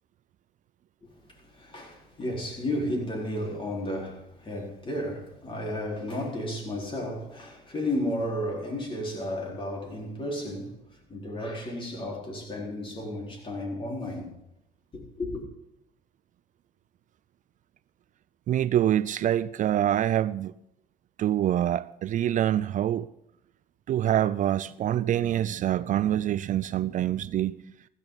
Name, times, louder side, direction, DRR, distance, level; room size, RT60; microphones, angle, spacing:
voice 1, 1.0-14.4 14.9-15.4, left 1 dB, 30° left, 4.5 m, -33 dB
voice 2, 18.5-20.5 21.2-23.1 23.9-27.6, right 11 dB, 50° right, 0.4 m, -25 dB
16.0 x 14.0 x 4.1 m
cardioid pair, 110°, 17 cm